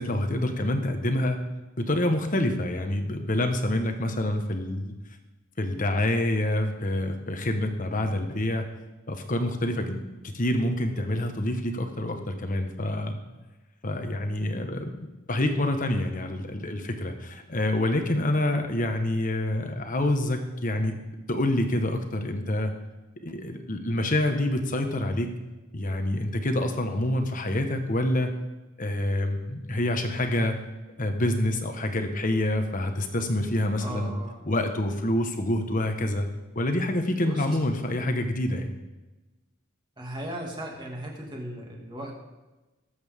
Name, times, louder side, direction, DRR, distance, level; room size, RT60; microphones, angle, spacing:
voice 1, 0.0-1.4 1.8-4.9 5.6-8.6 9.1-10.0 10.3-13.2 13.8-20.9 21.3-22.7 23.2-25.3 25.7-28.3 28.8-30.6 31.0-34.1 34.4-36.3 36.5-38.7, left 1 dB, 40° left, 5 dB, 1.3 m, -27 dB
voice 2, 33.8-34.5 37.0-37.5 40.0-42.1, right 1 dB, 20° right, -1 dB, 2.3 m, -37 dB
19.5 x 8.0 x 3.7 m, 1.1 s
head